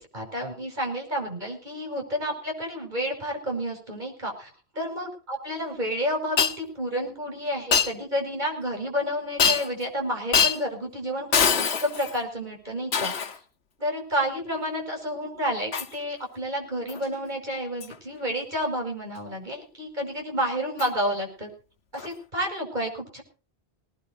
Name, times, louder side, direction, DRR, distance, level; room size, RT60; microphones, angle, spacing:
voice 1, 0.0-13.4 13.8-21.5 21.9-23.2, equal, 45° right, 2 dB, 5.8 m, -30 dB
Shatter, 6.4-6.6 7.7-7.9 9.4-9.8 10.3-10.6 11.3-12.2 12.9-13.4 15.7-15.9 16.9-17.1 17.8-18.0 20.8-20.9 22.0-22.1, left 6 dB, 90° left, 1.4 m, -23 dB
19.5 x 19.5 x 2.7 m, 0.36 s
omnidirectional pair, 1.1 m